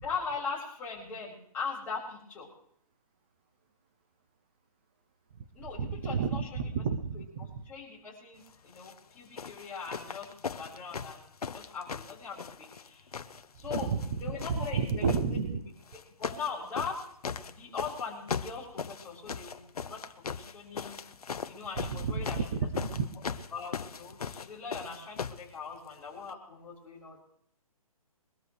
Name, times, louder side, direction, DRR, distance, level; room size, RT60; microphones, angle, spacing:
voice 1, 0.0-2.5 5.5-6.5 7.1-7.2 7.6-11.2 11.5-13.1 13.5-13.9 14.2-15.1 15.5-15.6 16.2-17.0 17.5-19.6 19.9-20.0 20.3-21.0 21.5-22.4 23.5-27.2, left 5 dB, 10° left, -7 dB, 4.5 m, -40 dB
voice 2, 5.8-7.6 13.6-15.6 21.9-23.1, right 5 dB, 15° right, 8 dB, 0.5 m, -31 dB
sound 1, 8.7-9.0 9.4-12.9 13.1-14.1 14.4-15.2 15.9-16.5 16.8-25.5 26.3-26.4, left 6 dB, 80° left, 1.1 m, -38 dB
23.0 x 13.5 x 3.2 m, 0.68 s
hypercardioid pair, 170°, 19 cm